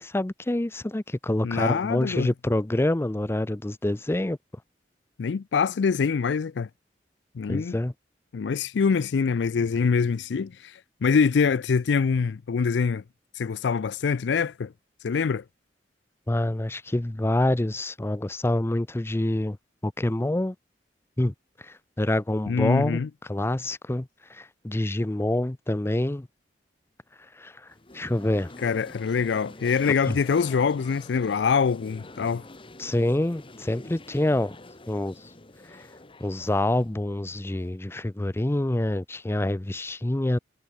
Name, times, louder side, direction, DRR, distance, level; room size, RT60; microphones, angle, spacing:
voice 1, 0.0-4.4 7.5-7.9 16.3-19.6 19.8-20.6 21.2-21.3 21.6-26.3 27.4-27.7 27.9-28.5 30.1-30.2 32.8-34.6 34.9-35.1 36.2-40.4, left 1 dB, 15° left, 0.5 m, -26 dB
voice 2, 1.4-2.3 5.2-6.7 7.4-7.8 8.3-13.0 13.3-14.7 15.0-15.4 22.5-23.1 28.6-32.4, left 5 dB, 80° left, 0.4 m, -24 dB
sound 1, 27.7-37.7, left 2 dB, 30° left, 1.7 m, -46 dB
head